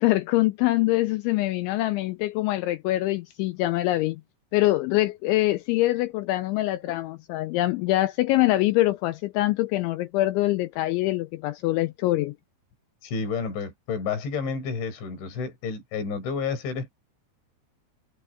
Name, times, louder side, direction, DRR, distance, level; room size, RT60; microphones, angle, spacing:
voice 1, 0.0-4.2 4.5-12.3, left 17 dB, 85° left, 2.7 m, -24 dB
voice 2, 13.0-16.9, left 5 dB, 60° left, 7.2 m, -30 dB
omnidirectional pair, 5.9 m